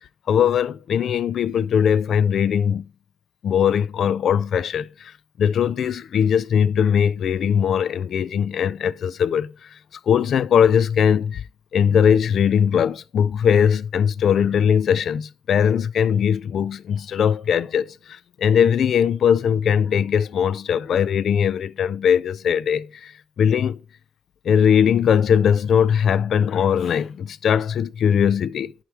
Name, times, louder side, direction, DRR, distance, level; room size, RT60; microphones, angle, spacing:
voice 1, 0.3-2.9 3.4-5.1 5.4-9.5 10.1-11.4 11.7-23.1 23.4-23.8 24.5-28.8, left 8 dB, 60° left, 0.4 m, -20 dB
11.5 x 4.7 x 3.4 m
cardioid pair, 90°, 0 cm